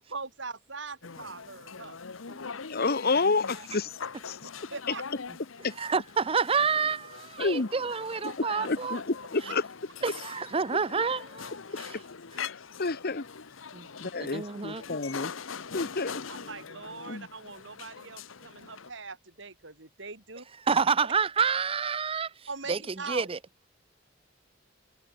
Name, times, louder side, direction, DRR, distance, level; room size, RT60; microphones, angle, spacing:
voice 1, 0.1-2.0 4.7-5.0 16.3-20.4 22.5-23.3, right 4 dB, 65° right, 3.7 m, -41 dB
sound 1, 1.0-18.9, left 6 dB, 80° left, 1.0 m, -42 dB
voice 2, 2.7-3.9 4.2-4.4 5.6-5.7 7.4-7.7 8.2-9.6 12.4-12.5 12.8-13.2 14.0-15.3 15.7-16.2 17.1-17.3, left 3 dB, 50° left, 1.1 m, -29 dB
voice 3, 5.8-9.0 10.0-11.5 11.8-12.0 13.7-13.9 14.2-15.0 20.7-22.3 22.7-22.8 23.1-23.4, right 5 dB, 30° right, 0.6 m, -28 dB
head